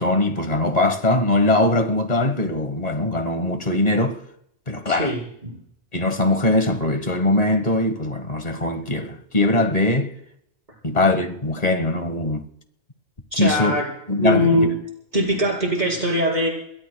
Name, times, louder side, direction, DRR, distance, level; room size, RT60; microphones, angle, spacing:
voice 1, 0.0-4.2 4.7-5.1 5.9-10.1 10.8-12.4 13.4-13.8 14.1-14.6, left 2 dB, 35° left, 1.4 m, -21 dB
voice 2, 4.9-5.6 13.3-13.9 14.2-14.8 15.1-16.5, equal, 40° right, 5.3 m, -21 dB
29.0 x 21.5 x 2.3 m
omnidirectional pair, 1.2 m